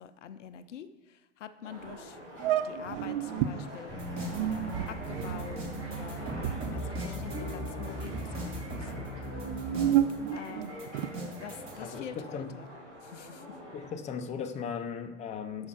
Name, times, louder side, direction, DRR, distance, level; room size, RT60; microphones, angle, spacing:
voice 1, 0.0-2.2 2.6-9.0 10.3-10.8 11.4-12.7 13.0-13.4, left 8 dB, 80° left, 11 dB, 0.6 m, -46 dB
sound 1, 1.6-13.9, left 1 dB, 85° right, 2.2 m, -47 dB
sound 2, 1.8-1.9 2.4-3.6 4.2-7.7 8.0-8.6 9.3-11.3, right 11 dB, 50° right, 0.5 m, -31 dB
sound 3, 3.9-11.8, right 1 dB, 35° right, 2.4 m, -38 dB
voice 2, 11.8-12.5 13.7-15.7, left 6 dB, 20° left, 6 dB, 0.5 m, -37 dB
6.4 x 5.3 x 4.8 m, 1.1 s
hypercardioid pair, 95°, 36 cm